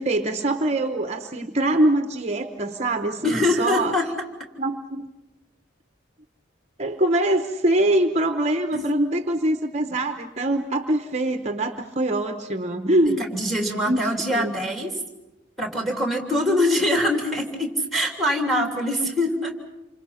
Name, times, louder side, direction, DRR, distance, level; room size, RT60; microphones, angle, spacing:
voice 1, 0.0-3.9 4.6-5.1 6.8-13.3 13.8-14.5, right 1 dB, 35° right, 7 dB, 0.9 m, -23 dB
voice 2, 3.2-4.1 8.7-8.9 13.0-14.9 15.6-19.6, left 1 dB, ahead, 3 dB, 3.2 m, -24 dB
28.0 x 24.5 x 5.8 m, 1.0 s
head